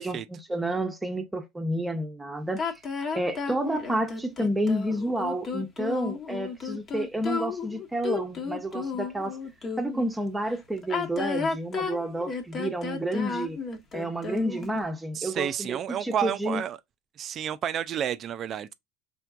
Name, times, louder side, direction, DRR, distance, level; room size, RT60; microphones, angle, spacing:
voice 1, 0.0-2.8 3.1-9.4 9.8-13.6 13.9-16.6, right 1 dB, 10° right, 0.9 m, -30 dB
sound 1, 2.6-10.1 10.8-14.8, left 5 dB, 35° left, 1.1 m, -33 dB
voice 2, 15.1-16.8 17.2-18.7, right 9 dB, 45° right, 0.4 m, -30 dB
4.4 x 3.5 x 2.4 m
hypercardioid pair, 80°, 0 cm